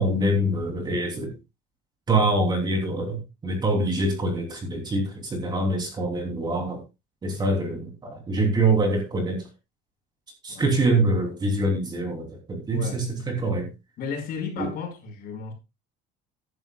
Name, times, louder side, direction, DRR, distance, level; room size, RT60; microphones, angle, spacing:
voice 1, 0.0-1.3 2.1-6.8 7.2-9.5 10.4-13.7 14.6-14.7, right 2 dB, 20° right, 3.1 m, -25 dB
voice 2, 14.0-15.5, left 6 dB, 50° left, 5.2 m, -33 dB
16.0 x 11.0 x 2.3 m
cardioid pair, 175°, 20 cm